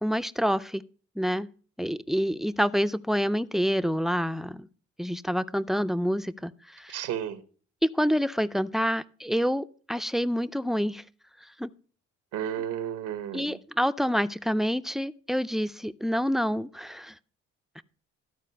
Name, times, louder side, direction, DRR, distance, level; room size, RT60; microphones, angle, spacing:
voice 1, 0.0-0.8 1.2-1.5 1.8-4.7 5.0-6.9 7.8-11.0 11.6-11.7 13.3-17.1 17.8-17.9, equal, ahead, 0.4 m, -27 dB
voice 2, 6.9-7.4 12.3-13.6, right 10 dB, 90° right, 1.0 m, -32 dB
13.5 x 4.6 x 5.5 m
cardioid pair, 90°, 30 cm